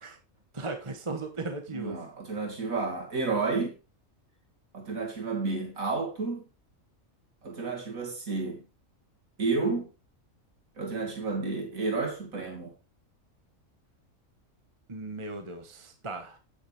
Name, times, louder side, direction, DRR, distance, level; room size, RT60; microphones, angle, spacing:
voice 1, 0.5-2.0 14.9-16.4, right 3 dB, 25° right, 1.2 m, -37 dB
voice 2, 1.7-3.8 4.7-6.4 7.4-8.6 9.4-9.9 10.8-12.7, right 4 dB, 85° right, 2.8 m, -31 dB
9.7 x 9.4 x 3.4 m
omnidirectional pair, 1.4 m